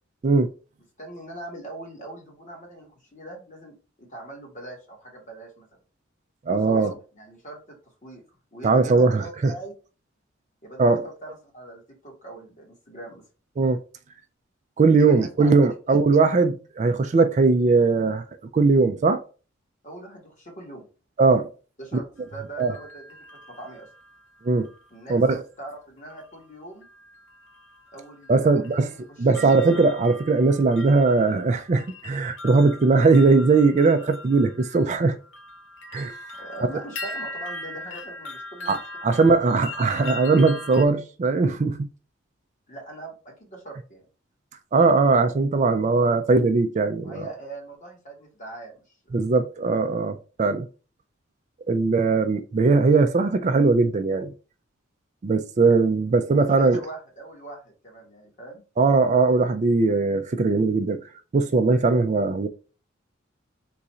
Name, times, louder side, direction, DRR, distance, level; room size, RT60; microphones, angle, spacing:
voice 1, 1.0-5.7 6.5-7.8 8.0-8.2 8.5-9.7 10.6-13.2 15.0-15.5 19.8-20.9 21.8-22.1 22.3-23.9 24.9-25.2 25.6-26.9 27.9-29.5 36.4-38.8 39.1-39.3 42.7-44.0 47.0-49.2 56.3-58.6, right 2 dB, 40° left, 1.6 m, -41 dB
voice 2, 6.5-6.9 8.6-9.5 10.8-11.0 13.6-13.8 14.8-18.2 18.5-19.2 21.2-21.5 22.6-22.7 24.4-24.7 25.1-25.4 28.3-28.9 29.2-35.2 35.9-36.1 38.7-38.8 39.0-41.9 44.7-47.2 49.1-50.7 51.7-54.3 55.2-56.8 58.8-61.0 61.3-62.5, right 3 dB, 35° right, 0.3 m, -20 dB
sound 1, 22.2-25.0 26.1-26.5 26.8-40.9, left 2 dB, 70° left, 0.8 m, -41 dB
3.8 x 2.5 x 4.2 m
head